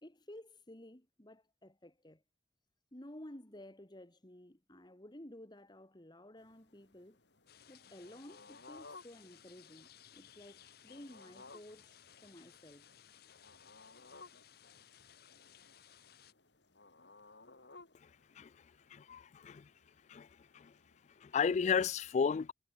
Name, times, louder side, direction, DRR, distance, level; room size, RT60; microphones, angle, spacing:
voice 1, 0.0-2.2 2.9-7.2 7.7-12.9, left 1 dB, 25° left, 2.4 m, -54 dB
sound 1, 6.4-21.8, left 3 dB, 80° left, 3.7 m, -60 dB
sound 2, 7.5-16.3, left 9 dB, 60° left, 0.9 m, -61 dB
voice 2, 18.9-19.7 20.1-20.7 21.2-22.5, left 6 dB, 40° left, 0.3 m, -34 dB
head